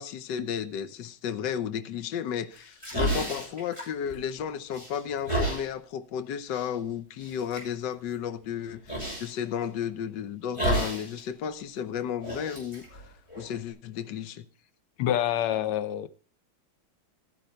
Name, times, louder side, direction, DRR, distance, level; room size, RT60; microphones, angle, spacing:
voice 1, 0.0-12.8 13.4-14.4, left 8 dB, 60° left, 1.5 m, -33 dB
sound 1, 2.6-4.4 4.7-5.7 6.5-6.7 7.2-7.6 8.9-9.3 10.5-11.2 11.5-11.6 12.2-13.7, right 1 dB, 15° left, 6.4 m, -31 dB
voice 2, 15.0-16.1, left 11 dB, 90° left, 1.7 m, -26 dB
13.5 x 11.0 x 4.5 m
omnidirectional pair, 2.4 m